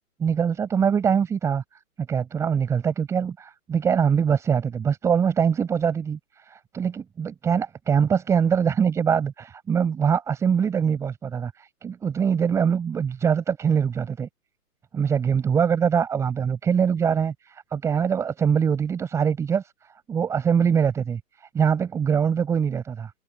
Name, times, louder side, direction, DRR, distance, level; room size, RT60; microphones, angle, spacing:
voice 1, 0.2-1.6 2.1-14.3 14.9-23.1, right 7 dB, 5° right, 5.1 m, -23 dB
hypercardioid pair, 160°, 48 cm